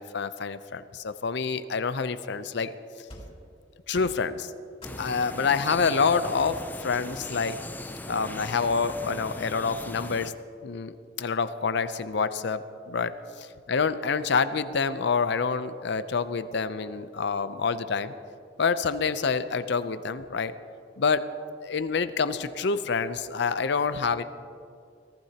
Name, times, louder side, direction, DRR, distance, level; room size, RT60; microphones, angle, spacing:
voice 1, 0.0-2.7 3.9-4.5 5.0-7.6 8.1-10.3 10.6-18.1 18.6-20.5 21.0-21.3 21.6-24.2, left 5 dB, 65° left, 12 dB, 0.6 m, -27 dB
sound 1, 3.1-3.4 3.9-4.3 4.8-5.3 6.4-7.5 8.1-9.1, left 1 dB, 35° left, 3.0 m, -47 dB
sound 2, 4.8-10.3, left 1 dB, 10° left, 0.5 m, -39 dB
23.5 x 15.0 x 2.9 m, 2.4 s
head